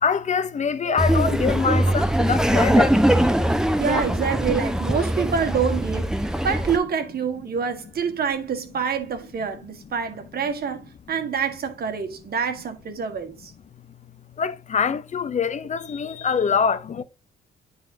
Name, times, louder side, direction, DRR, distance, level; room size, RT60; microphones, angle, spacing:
voice 1, 0.0-3.0 14.4-17.0, left 6 dB, 40° left, 0.6 m, -24 dB
voice 2, 0.8-1.3 1.7-2.0 3.8-6.1 6.4-13.5, right 6 dB, 55° right, 1.6 m, -27 dB
Laughter, 1.0-6.8, right 1 dB, 5° right, 0.9 m, -21 dB
10.5 x 4.0 x 2.7 m
cardioid pair, 80°, 19 cm